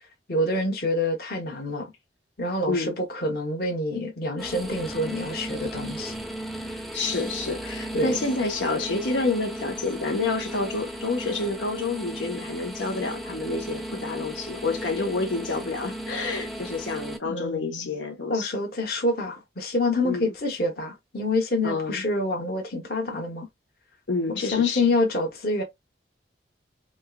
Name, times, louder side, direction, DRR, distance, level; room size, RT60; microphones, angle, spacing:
voice 1, 0.3-1.9 2.4-6.1 7.9-8.2 17.3-17.9 18.3-23.5 24.3-25.6, left 2 dB, 55° left, 1.1 m, -27 dB
sound 1, 4.4-17.2, right 1 dB, ahead, 0.5 m, -35 dB
voice 2, 6.9-18.5 20.0-20.3 21.6-22.0 24.1-24.8, left 3 dB, 90° left, 1.1 m, -29 dB
4.4 x 2.4 x 2.3 m
head